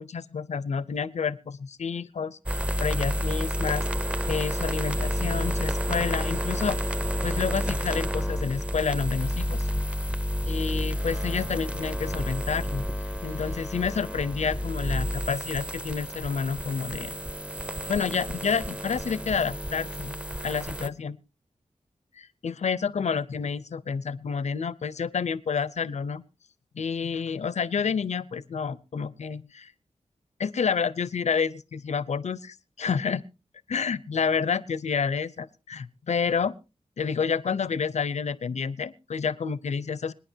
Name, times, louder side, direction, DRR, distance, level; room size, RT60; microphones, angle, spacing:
voice 1, 0.0-3.9 4.3-6.8 7.2-9.7 10.4-12.8 13.2-17.1 17.9-20.2 20.4-21.2 22.4-26.2 26.7-29.7 30.4-33.2 33.7-36.5 37.0-40.1, left 6 dB, 75° left, 18 dB, 0.7 m, -29 dB
sound 1, 2.5-20.9, equal, 10° right, 0.8 m, -30 dB
26.5 x 9.6 x 2.8 m, 0.30 s
wide cardioid pair, 80°, 12 cm